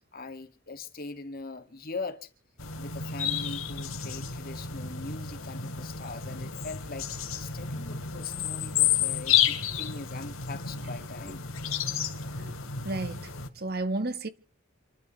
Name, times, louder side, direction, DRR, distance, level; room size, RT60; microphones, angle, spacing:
voice 1, 0.1-2.3 2.7-7.1 7.4-11.5, left 3 dB, 45° left, 2.3 m, -41 dB
sound 1, 2.6-13.5, left 8 dB, 85° left, 2.6 m, -31 dB
voice 2, 12.8-13.3 13.5-14.3, right 2 dB, 50° right, 1.6 m, -32 dB
28.5 x 12.0 x 3.3 m
head